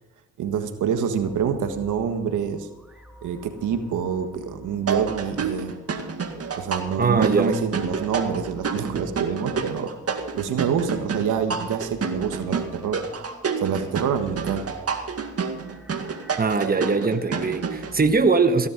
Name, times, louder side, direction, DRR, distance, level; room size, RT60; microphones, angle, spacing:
voice 1, 0.4-2.7 3.2-5.7 6.6-9.9 10.4-13.0 13.6-14.7, right 7 dB, 85° right, 7 dB, 1.6 m, -26 dB
sound 1, 1.2-18.1, equal, 5° right, 2.8 m, -48 dB
sound 2, 4.9-17.9, right 5 dB, 50° right, 2.0 m, -29 dB
voice 2, 7.0-7.6 16.4-18.7, right 4 dB, 30° right, 8 dB, 1.3 m, -21 dB
16.5 x 10.5 x 5.2 m, 0.98 s
supercardioid pair, 55°, 30 cm